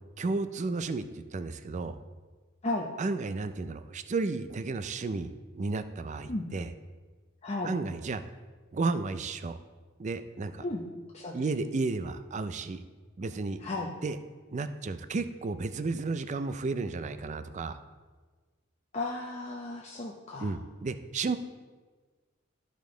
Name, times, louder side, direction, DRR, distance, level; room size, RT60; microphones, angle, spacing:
voice 1, 0.2-2.0 3.0-5.3 5.5-6.7 7.6-8.2 8.7-9.6 10.0-10.6 11.3-12.8 13.2-13.6 14.0-14.2 14.5-17.8 20.4-21.4, right 3 dB, 35° right, 11 dB, 0.4 m, -33 dB
voice 2, 7.4-7.7 10.6-10.8 11.1-11.4 13.6-13.9 18.9-20.5, left 2 dB, 35° left, -3 dB, 0.7 m, -34 dB
12.5 x 5.2 x 3.8 m, 1.4 s
head